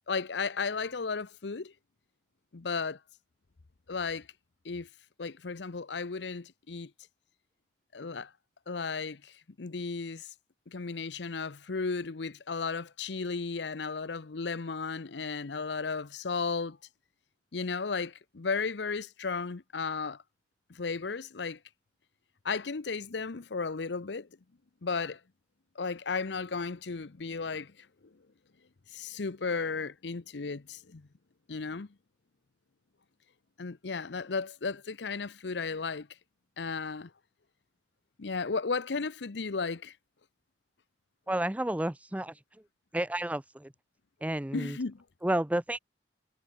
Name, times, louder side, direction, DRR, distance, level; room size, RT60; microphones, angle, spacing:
voice 1, 0.1-1.7 2.5-3.0 3.9-4.3 4.6-4.9 5.2-6.9 7.9-8.3 8.7-10.3 10.7-16.8 17.5-20.2 20.7-21.6 22.4-24.3 24.8-25.2 25.8-27.9 28.9-31.1 31.5-31.9 33.6-36.1 36.6-37.1 38.2-39.9 44.5-45.0, left 4 dB, 75° left, 0.8 m, -34 dB
voice 2, 41.3-42.4 42.9-43.7 44.2-44.8 45.2-45.8, right 1 dB, 10° right, 0.5 m, -31 dB
head